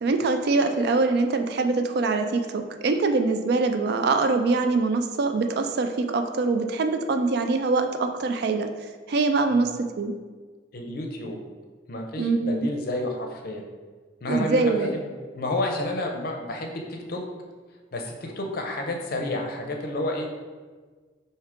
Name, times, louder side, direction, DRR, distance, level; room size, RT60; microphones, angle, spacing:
voice 1, 0.0-8.7 9.1-9.7 10.0-10.1 12.2-12.7 14.3-14.9, right 3 dB, 60° right, 6 dB, 0.3 m, -23 dB
voice 2, 10.7-11.4 11.9-13.6 14.2-17.2 17.9-20.3, left 1 dB, 50° left, 2 dB, 0.5 m, -30 dB
4.6 x 2.7 x 3.6 m, 1.5 s
head